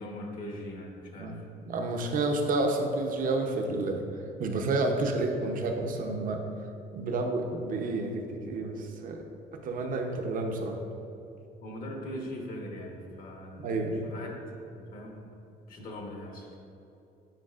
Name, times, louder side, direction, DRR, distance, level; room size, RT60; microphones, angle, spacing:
voice 1, 0.0-1.4 11.6-14.3 14.6-15.3 15.7-16.5, left 1 dB, 55° left, 0 dB, 1.1 m, -41 dB
voice 2, 1.2-4.0 4.4-6.4 6.9-9.2 9.6-10.8 13.6-14.1, right 2 dB, 55° right, 3 dB, 0.7 m, -30 dB
9.0 x 4.7 x 2.4 m, 2.8 s
cardioid pair, 110°, 17 cm